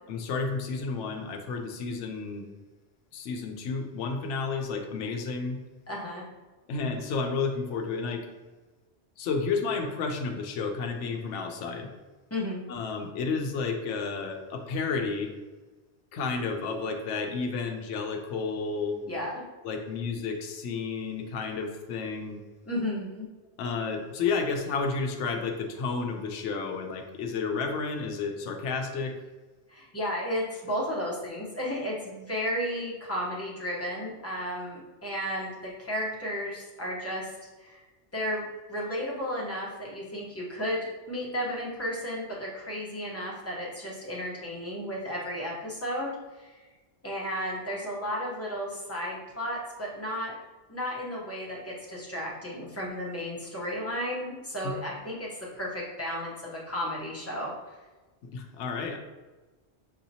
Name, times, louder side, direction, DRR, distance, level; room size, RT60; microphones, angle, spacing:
voice 1, 0.1-2.5 3.1-5.6 6.7-8.3 9.2-11.9 12.7-15.3 16.1-19.0 19.6-22.4 23.6-29.2 54.6-54.8 58.2-59.0, left 4 dB, 90° left, 4 dB, 0.9 m, -31 dB
voice 2, 5.9-6.2 12.3-12.6 19.0-19.4 22.6-23.3 29.7-37.3 37.6-37.8 38.1-46.1 46.4-46.5 47.0-50.3 50.7-57.5, equal, 15° left, -5 dB, 0.8 m, -33 dB
5.9 x 2.8 x 2.7 m, 1.2 s
omnidirectional pair, 1.2 m